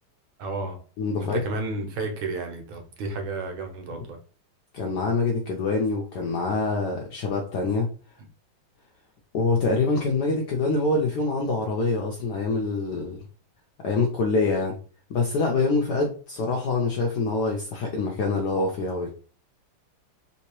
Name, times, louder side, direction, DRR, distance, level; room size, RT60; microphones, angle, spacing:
voice 1, 0.4-0.8 1.2-4.2, right 3 dB, 75° right, 4 dB, 1.5 m, -32 dB
voice 2, 1.0-1.4 3.9-4.0 4.7-7.9 9.3-13.2 13.8-14.8 15.1-19.1, left 3 dB, 75° left, 0 dB, 0.9 m, -25 dB
3.5 x 2.8 x 3.0 m, 0.39 s
omnidirectional pair, 2.3 m